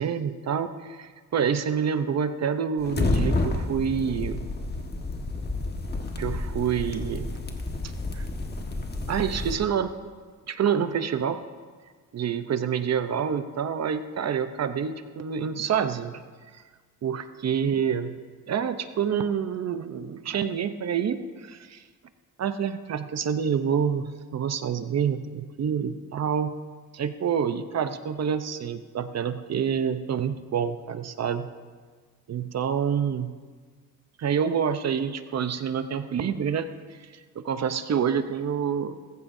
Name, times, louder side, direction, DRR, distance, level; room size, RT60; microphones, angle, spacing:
voice 1, 0.0-4.5 6.2-7.4 8.1-8.2 9.1-10.0 10.5-11.4 12.1-16.2 16.5-16.6 17.0-18.2 18.5-21.8 22.4-26.5 26.9-31.5 32.3-33.4 34.2-36.7 37.3-39.0, right 7 dB, 50° right, 10 dB, 0.8 m, -27 dB
sound 1, 2.8-9.6, left 2 dB, 30° left, 1.5 m, -30 dB
20.5 x 15.0 x 2.7 m, 1.5 s
cardioid pair, 105°, 33 cm